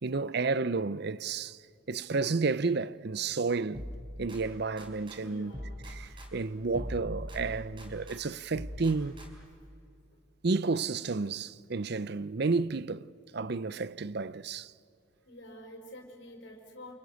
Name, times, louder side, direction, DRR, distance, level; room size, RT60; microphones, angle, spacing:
voice 1, 0.0-1.6 1.9-3.8 4.2-5.5 5.9-9.2 10.4-13.1 13.3-14.7, right 4 dB, 50° right, 0.6 m, -31 dB
sound 1, 3.7-5.2 5.5-8.2 8.5-9.6, equal, 25° right, 4.3 m, -42 dB
voice 2, 5.2-5.8 6.5-6.6 15.2-16.9, left 1 dB, 60° left, 5.2 m, -48 dB
29.0 x 29.0 x 6.5 m
head